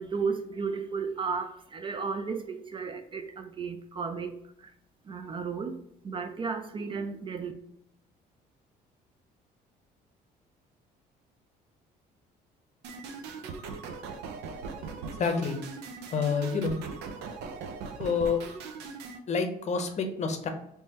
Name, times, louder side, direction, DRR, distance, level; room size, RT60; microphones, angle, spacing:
voice 1, 0.0-4.7 5.1-5.8 6.0-7.5, right 5 dB, 30° right, 7 dB, 0.3 m, -34 dB
sound 1, 12.8-19.2, right 4 dB, 85° right, 0.5 m, -40 dB
voice 2, 15.2-15.6 16.1-16.8 18.0-18.4 19.3-20.5, left 5 dB, 40° left, 6 dB, 0.6 m, -28 dB
3.5 x 3.1 x 2.9 m, 0.76 s
cardioid pair, 110°, 17 cm